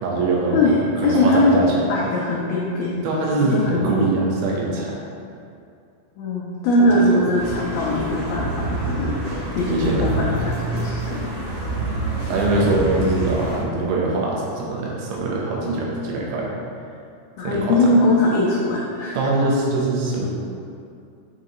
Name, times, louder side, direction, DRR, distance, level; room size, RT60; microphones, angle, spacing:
voice 1, 0.0-1.9 3.0-4.9 6.8-7.3 9.7-10.1 12.3-16.5 17.4-17.9 19.1-20.3, right 2 dB, 90° right, -3 dB, 3.4 m, -23 dB
voice 2, 0.5-1.6 1.9-3.0 3.4-4.0 6.2-9.2 9.5-11.3 17.4-19.2, left 1 dB, 85° left, -5 dB, 2.1 m, -21 dB
sound 1, 7.4-13.6, right 2 dB, 60° right, 2.9 m, -27 dB
8.5 x 4.7 x 3.0 m, 2.4 s
omnidirectional pair, 5.1 m